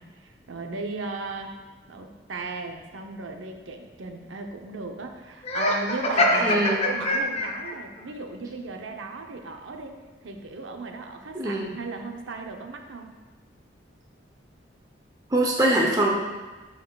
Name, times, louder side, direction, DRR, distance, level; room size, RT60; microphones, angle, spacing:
voice 1, 0.0-1.5 1.9-10.0 10.2-13.1, right 3 dB, 90° right, 3 dB, 0.7 m, -36 dB
Laughter, 5.4-7.8, left 1 dB, 35° left, 0.7 m, -24 dB
voice 2, 6.4-6.8 11.3-11.7 15.3-16.2, right 1 dB, 20° right, -2 dB, 0.7 m, -23 dB
11.5 x 4.6 x 2.3 m, 1.3 s
head